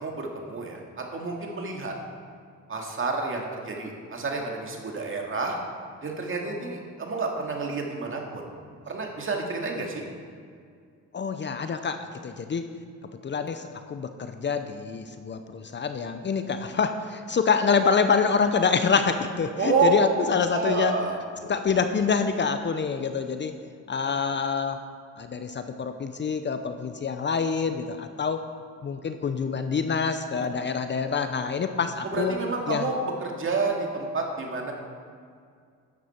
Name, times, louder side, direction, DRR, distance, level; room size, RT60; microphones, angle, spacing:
voice 1, 0.0-1.9 2.7-5.6 6.0-8.4 8.9-10.0 19.6-19.9 20.2-21.2 32.0-34.7, right 4 dB, 45° right, 1 dB, 2.1 m, -29 dB
voice 2, 11.1-12.6 13.2-20.9 21.4-23.5 23.9-24.8 25.2-28.4 28.8-32.4 32.7-32.9, left 5 dB, 40° left, 8 dB, 0.7 m, -26 dB
12.5 x 9.4 x 4.5 m, 2.2 s
cardioid pair, 90°, 30 cm